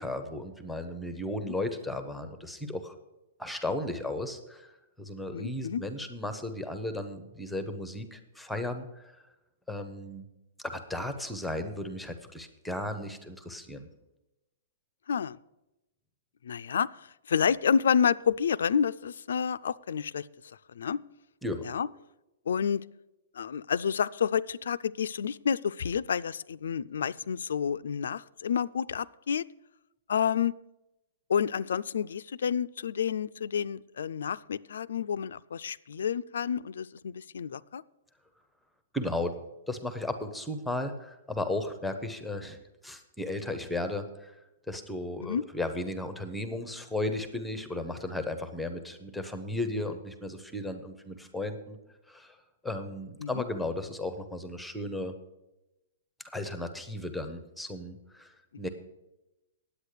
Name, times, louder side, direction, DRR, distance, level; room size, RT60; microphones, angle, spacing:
voice 1, 0.0-2.9 3.4-4.7 5.0-9.2 9.7-10.3 10.6-13.9 21.4-21.7 38.9-39.4 39.7-44.3 44.7-51.8 52.1-52.4 52.6-55.1 56.3-58.7, left 1 dB, ahead, 9 dB, 0.6 m, -35 dB
voice 2, 5.3-5.8 15.1-15.4 16.4-16.9 17.3-20.3 20.8-21.0 21.7-21.9 22.5-22.8 23.4-29.4 30.1-30.6 31.3-37.8 45.2-45.4 53.2-53.4, left 7 dB, 75° left, 16 dB, 0.4 m, -29 dB
9.8 x 8.4 x 6.5 m, 0.96 s
hypercardioid pair, 180°, 0 cm